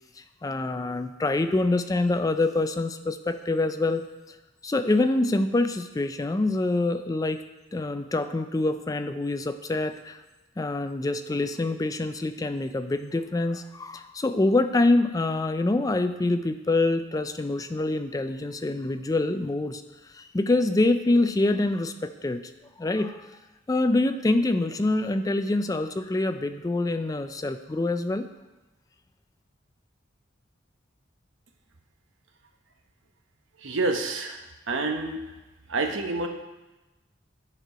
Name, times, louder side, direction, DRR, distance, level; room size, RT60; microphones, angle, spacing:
voice 1, 0.2-4.4 4.6-7.4 7.7-10.2 10.6-22.5 22.8-23.3 23.7-28.3, left 2 dB, 20° left, 9 dB, 0.3 m, -25 dB
voice 2, 33.6-35.3 35.7-36.3, right 3 dB, 80° right, 4 dB, 0.9 m, -28 dB
10.5 x 4.5 x 5.0 m, 1.1 s
head